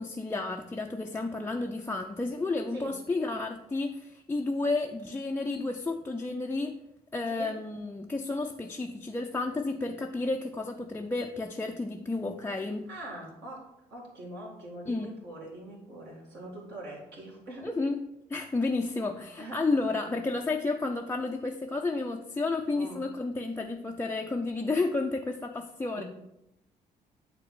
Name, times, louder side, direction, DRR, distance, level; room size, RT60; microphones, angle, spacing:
voice 1, 0.0-6.8 7.1-12.9 14.9-15.1 17.6-26.0, left 3 dB, 10° left, 1 dB, 0.5 m, -31 dB
voice 2, 7.3-7.6 12.9-17.7 19.4-19.6 22.7-23.0 25.9-26.0, right 1 dB, 55° right, -4 dB, 2.0 m, -43 dB
8.9 x 3.6 x 4.2 m, 0.85 s
figure-of-eight pair, 45°, 21 cm